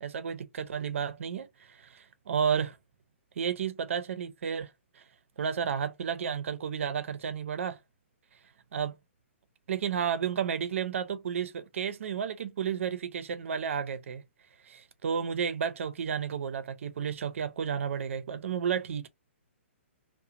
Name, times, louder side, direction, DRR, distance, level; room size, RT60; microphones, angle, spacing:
voice 1, 0.0-2.8 3.4-4.7 5.0-5.1 5.4-7.8 8.7-9.0 9.7-14.2 14.7-19.1, right 7 dB, 70° right, 0.5 m, -32 dB
2.4 x 2.1 x 2.7 m
hypercardioid pair, 155°, 7 cm